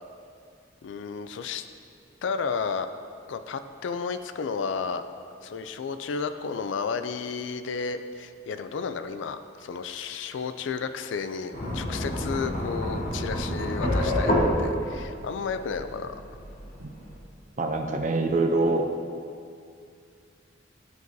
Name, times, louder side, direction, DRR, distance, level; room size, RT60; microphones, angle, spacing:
voice 1, 0.8-1.7 2.2-2.9 3.3-5.0 5.4-14.3 14.6-16.2, left 5 dB, 80° left, 10 dB, 0.4 m, -32 dB
sound 1, 11.5-17.2, equal, 50° left, 1.3 m, -28 dB
voice 2, 17.6-18.8, right 2 dB, 40° right, 5 dB, 0.5 m, -24 dB
11.5 x 4.6 x 2.7 m, 2.3 s
head